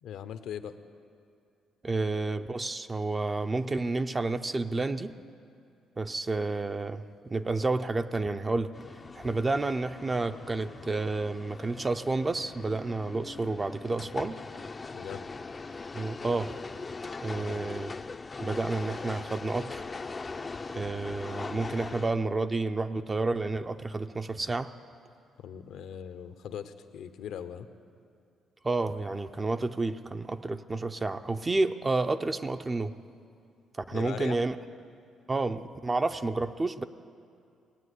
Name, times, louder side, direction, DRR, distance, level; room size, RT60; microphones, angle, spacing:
voice 1, 0.0-0.8 14.9-15.2 17.4-17.6 25.4-27.7 33.9-34.4, left 9 dB, 80° left, 11 dB, 0.8 m, -40 dB
voice 2, 1.8-5.1 6.0-8.7 9.1-14.4 15.9-16.5 17.2-17.9 18.4-19.8 20.7-24.7 28.6-32.9 33.7-34.6 35.3-36.8, right 3 dB, 25° right, 9 dB, 0.5 m, -30 dB
sound 1, 8.7-22.1, left 4 dB, 30° left, 0.4 m, -41 dB
19.5 x 9.2 x 8.2 m, 2.5 s
cardioid pair, 90°, 0 cm